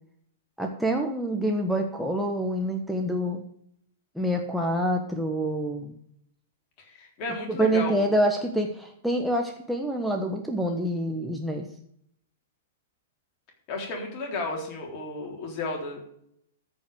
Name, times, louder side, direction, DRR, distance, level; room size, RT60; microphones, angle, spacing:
voice 1, 0.6-3.4 4.1-6.0 7.5-11.7, right 1 dB, ahead, 1 dB, 1.3 m, -26 dB
voice 2, 6.8-8.0 13.7-16.0, left 3 dB, 35° left, 1 dB, 3.8 m, -33 dB
14.0 x 5.5 x 7.8 m, 0.71 s
figure-of-eight pair, 105°, 0 cm